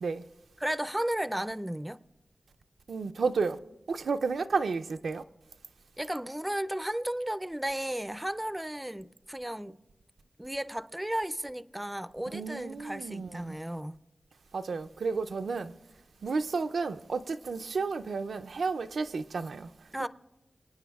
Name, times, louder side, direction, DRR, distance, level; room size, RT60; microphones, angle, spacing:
voice 1, 0.6-2.0 6.0-9.8 10.4-14.0 19.9-20.1, right 1 dB, 10° right, 0.4 m, -34 dB
voice 2, 2.9-3.6 3.9-5.2 12.3-13.6 14.5-15.7 16.2-19.7, right 4 dB, 90° right, 0.4 m, -32 dB
24.5 x 9.6 x 2.3 m
wide cardioid pair, 75°, 0 cm